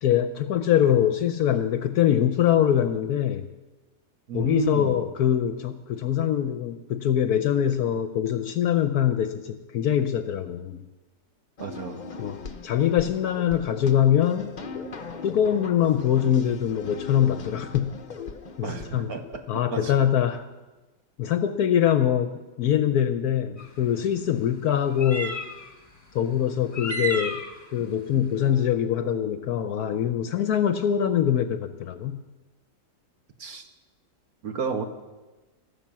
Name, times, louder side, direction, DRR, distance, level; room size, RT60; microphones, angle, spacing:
voice 1, 0.0-3.4 4.3-10.8 12.2-14.5 15.2-17.9 18.6-19.1 19.5-20.5 21.2-22.3 22.6-25.4 26.1-27.4 27.7-32.2, left 10 dB, 70° left, 10 dB, 1.0 m, -23 dB
voice 2, 4.3-5.0 11.6-12.0 18.6-19.4 19.7-19.9 33.4-33.6 34.4-34.9, right 5 dB, 60° right, 6 dB, 1.4 m, -31 dB
sound 1, 11.6-19.9, left 4 dB, 50° left, 0.5 m, -40 dB
sound 2, 23.6-23.7 24.9-25.7 26.7-27.6, right 1 dB, 20° left, 1.3 m, -31 dB
17.0 x 6.8 x 7.3 m, 1.2 s
omnidirectional pair, 2.0 m